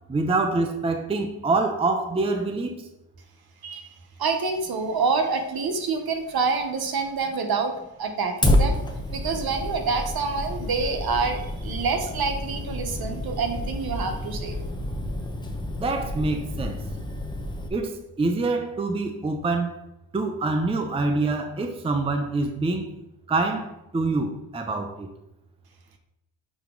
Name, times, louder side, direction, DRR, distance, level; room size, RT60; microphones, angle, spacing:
voice 1, 0.1-2.9 15.8-16.9 17.7-19.8 20.1-22.9 23.3-25.1, right 3 dB, 15° right, 0.6 m, -26 dB
voice 2, 3.6-3.9 4.2-8.8 9.1-14.6, right 4 dB, 55° right, 1.1 m, -27 dB
Fire, 8.4-17.7, left 1 dB, 10° left, 0.9 m, -29 dB
8.7 x 3.0 x 3.8 m
supercardioid pair, 60°, 45 cm